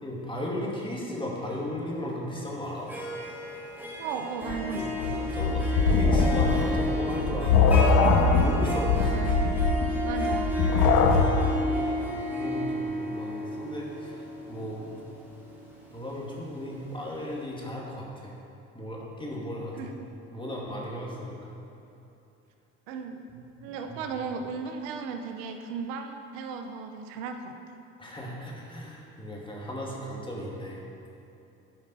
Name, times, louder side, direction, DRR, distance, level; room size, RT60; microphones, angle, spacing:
voice 1, 0.0-2.9 4.7-4.8 5.1-7.8 8.4-9.2 11.8-14.9 15.9-18.3 18.7-19.9 20.3-21.5 23.3-24.0 28.0-30.8, left 1 dB, 15° left, -3 dB, 2.2 m, -36 dB
Harp, 2.7-16.7, equal, 5° right, 2.2 m, -32 dB
voice 2, 4.0-5.0 9.1-9.5 10.0-10.5 19.8-20.1 22.9-23.2 23.6-27.5, right 5 dB, 85° right, 5 dB, 0.8 m, -36 dB
sound 1, 4.5-11.6, left 4 dB, 75° left, 1.0 m, -22 dB
10.5 x 5.2 x 5.5 m, 2.8 s
supercardioid pair, 80°, 36 cm